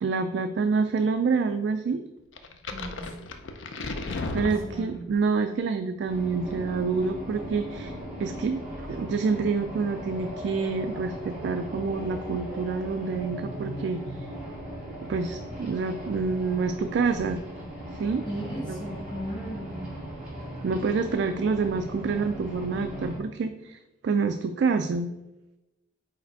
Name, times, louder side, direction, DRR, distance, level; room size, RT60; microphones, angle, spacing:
voice 1, 0.0-2.1 4.3-7.9 8.2-14.3 15.1-17.4 18.0-18.3 18.7-18.8 20.6-25.1, right 4 dB, 60° right, 8 dB, 0.3 m, -27 dB
sound 1, 2.4-5.2, left 2 dB, 75° left, 0.6 m, -34 dB
voice 2, 2.7-3.1 4.4-4.9 18.2-19.9, equal, 25° left, -5 dB, 2.0 m, -36 dB
sound 2, 6.1-23.2, equal, 5° right, 1.9 m, -38 dB
4.8 x 4.2 x 4.6 m, 1.0 s
head